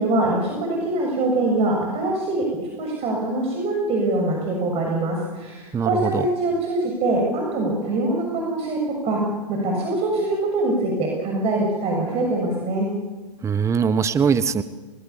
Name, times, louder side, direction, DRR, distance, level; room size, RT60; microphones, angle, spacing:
voice 1, 0.0-2.5 2.8-9.2 9.5-12.9, right 2 dB, 30° right, 0 dB, 7.1 m, -23 dB
voice 2, 5.7-6.3 13.4-14.6, right 6 dB, 15° right, 14 dB, 1.1 m, -21 dB
30.0 x 20.5 x 7.3 m, 1.2 s
figure-of-eight pair, 110°, 20 cm